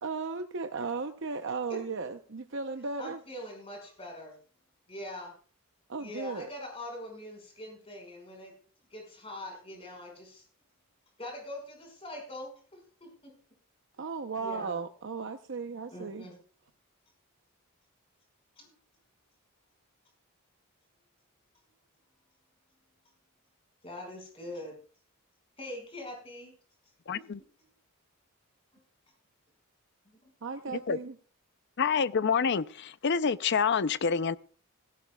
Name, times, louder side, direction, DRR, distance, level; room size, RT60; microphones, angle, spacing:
voice 1, 0.0-3.2 5.9-6.5 14.0-16.3 30.4-31.1, right 4 dB, 60° right, 0.7 m, -36 dB
voice 2, 3.0-4.4 4.9-5.3 6.0-8.5 8.9-10.4 11.2-13.3 14.4-14.8 15.9-16.4 18.6-18.7 23.8-24.7 25.6-26.5 27.1-27.3 28.7-28.8 30.2-30.3 30.7-30.8, left 1 dB, 25° left, 5.3 m, -43 dB
voice 3, 27.1-27.4 30.9-31.0 31.8-34.4, left 6 dB, 50° left, 0.5 m, -27 dB
16.5 x 16.0 x 2.3 m
head